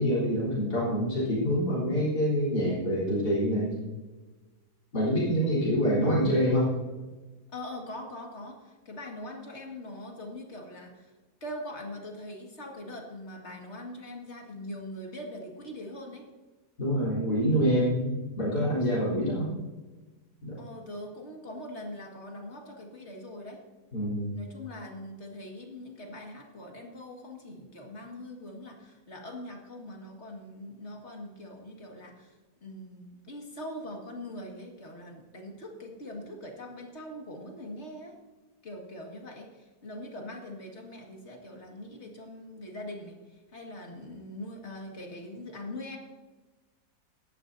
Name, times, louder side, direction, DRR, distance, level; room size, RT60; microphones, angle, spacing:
voice 1, 0.0-3.7 4.9-6.7 16.8-19.5 20.4-20.6 23.9-24.4, equal, 75° left, -7 dB, 4.4 m, -26 dB
voice 2, 7.5-11.1 11.4-16.2 20.6-23.6 24.3-32.4 32.6-38.1 38.6-46.0, left 1 dB, 45° left, 1 dB, 2.2 m, -42 dB
17.0 x 11.5 x 2.7 m, 1.2 s
omnidirectional pair, 1.7 m